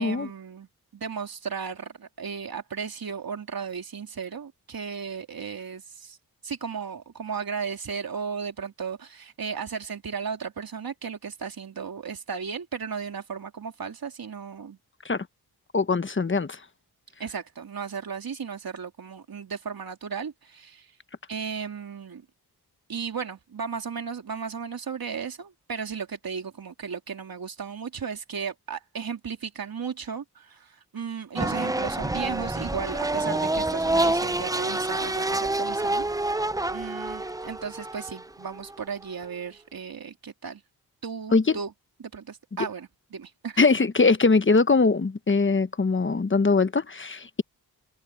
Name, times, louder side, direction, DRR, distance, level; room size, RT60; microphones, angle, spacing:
voice 1, 0.0-6.2 6.4-14.8 17.2-20.9 21.3-22.2 22.9-36.0 36.7-40.6 41.0-41.7 42.0-43.6, right 6 dB, 60° right, 3.2 m, -35 dB
voice 2, 15.7-16.6 41.3-41.4 43.6-47.4, left 4 dB, 30° left, 1.1 m, -22 dB
sound 1, 31.4-39.2, right 2 dB, 10° right, 0.7 m, -27 dB
open air
cardioid pair, 60°, 39 cm